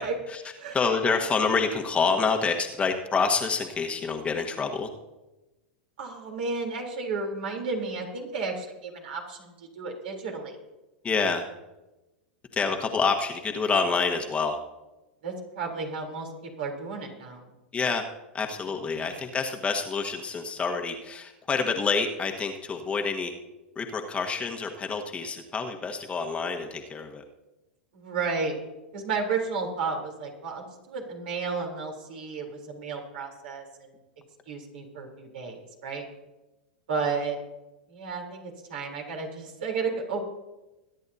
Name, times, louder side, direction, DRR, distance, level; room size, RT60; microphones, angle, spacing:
voice 1, 0.7-4.9 11.0-11.4 12.5-14.6 17.7-18.0 18.3-23.3 23.7-27.2, left 5 dB, 20° left, 4 dB, 1.3 m, -27 dB
voice 2, 6.0-10.6 15.2-16.3 16.6-17.5 18.9-19.1 27.9-28.6 28.9-33.9 34.5-36.1 36.9-37.4 37.9-40.3, right 4 dB, 70° right, 1 dB, 3.5 m, -33 dB
21.5 x 10.5 x 2.8 m, 1.0 s
hypercardioid pair, 100°, 6 cm